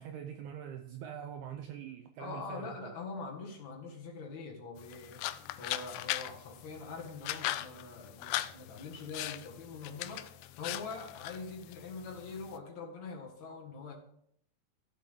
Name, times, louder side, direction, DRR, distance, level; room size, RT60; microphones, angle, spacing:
voice 1, 0.0-3.0, right 9 dB, 80° right, 1.7 m, -44 dB
voice 2, 2.2-13.9, left 4 dB, 60° left, 2.9 m, -44 dB
sound 1, 4.8-12.6, left 14 dB, 80° left, 1.9 m, -40 dB
14.0 x 7.9 x 3.5 m
omnidirectional pair, 4.0 m